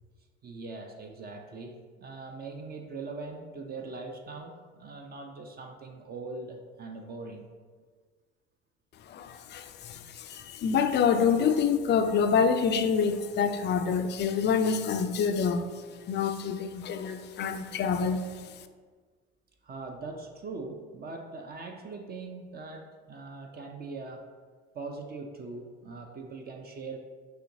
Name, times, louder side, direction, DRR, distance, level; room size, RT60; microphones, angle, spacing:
voice 1, 0.4-7.5 19.6-24.2 24.7-27.0, right 3 dB, 30° right, 4 dB, 0.5 m, -41 dB
voice 2, 9.1-15.7 16.1-18.2, left 6 dB, 35° left, 8 dB, 0.4 m, -26 dB
5.7 x 2.8 x 2.6 m, 1.5 s
hypercardioid pair, 65°, 31 cm